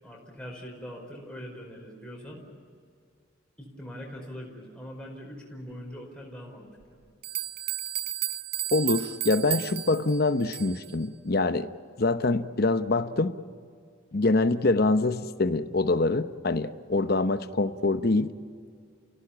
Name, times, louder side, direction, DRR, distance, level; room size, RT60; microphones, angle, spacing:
voice 1, 0.0-2.4 3.6-7.0, equal, 5° left, -2 dB, 4.9 m, -42 dB
sound 1, 6.8-6.9 7.2-10.9, right 14 dB, 50° right, 0.6 m, -33 dB
voice 2, 8.7-11.7 12.0-13.3 14.1-18.3, left 2 dB, 50° left, 11 dB, 0.8 m, -25 dB
30.0 x 16.5 x 8.6 m, 2.2 s
head